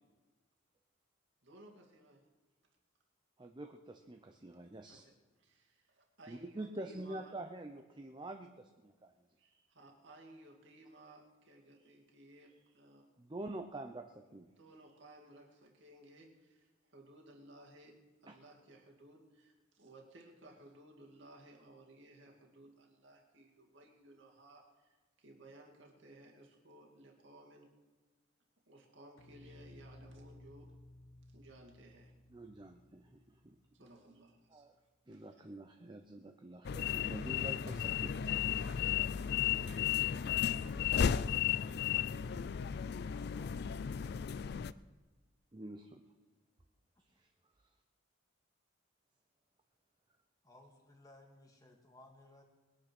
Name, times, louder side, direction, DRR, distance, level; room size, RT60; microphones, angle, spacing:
voice 1, 1.4-2.2 4.9-5.1 5.4-7.4 9.4-13.0 14.6-27.7 28.7-30.7 31.3-32.1 33.7-34.7 35.1-35.5, right 1 dB, 60° right, 0 dB, 2.3 m, -59 dB
voice 2, 3.4-5.0 6.3-9.1 13.2-14.5 18.3-18.4 32.3-33.6 34.5-34.7 35.1-38.2 45.5-46.0 47.2-47.3, right 1 dB, 20° right, 5 dB, 0.6 m, -47 dB
sound 1, 29.2-34.4, left 1 dB, 85° left, 1.2 m, -58 dB
sound 2, 36.6-44.7, left 8 dB, 50° left, 0.4 m, -34 dB
voice 3, 43.3-44.6 47.1-47.2 50.4-52.4, left 1 dB, 15° left, 2 dB, 1.9 m, -61 dB
20.5 x 8.8 x 6.1 m, 1.3 s
head